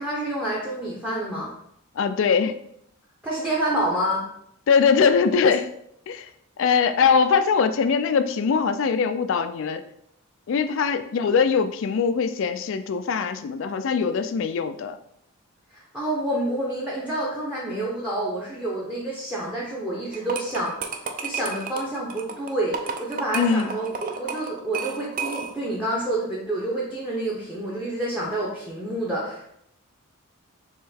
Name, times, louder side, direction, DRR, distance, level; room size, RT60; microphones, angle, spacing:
voice 1, 0.0-1.5 3.2-4.2 15.7-20.7 21.2-29.5, right 1 dB, 5° right, -5 dB, 0.7 m, -28 dB
voice 2, 2.0-2.6 4.7-5.7 6.1-6.3 6.6-9.8 10.5-15.0 23.3-23.7, left 6 dB, 60° left, 11 dB, 0.3 m, -22 dB
sound 1, 20.1-25.7, right 5 dB, 40° right, 0.4 m, -32 dB
3.7 x 3.1 x 4.3 m, 0.74 s
head